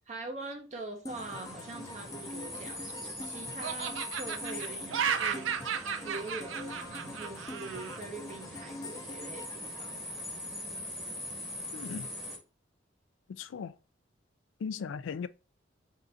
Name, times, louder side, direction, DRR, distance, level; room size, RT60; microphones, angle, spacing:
voice 1, 0.1-5.5 6.0-9.9, right 2 dB, 35° right, 0.6 m, -43 dB
sound 1, 1.0-10.8, left 2 dB, 20° left, 0.4 m, -46 dB
sound 2, 1.1-12.4, left 1 dB, ahead, 0.9 m, -42 dB
Laughter, 2.4-3.2 3.6-8.0, right 7 dB, 80° right, 0.4 m, -34 dB
voice 2, 11.7-12.1 13.3-13.8 14.6-15.3, left 6 dB, 80° left, 0.3 m, -37 dB
3.7 x 2.5 x 4.3 m
head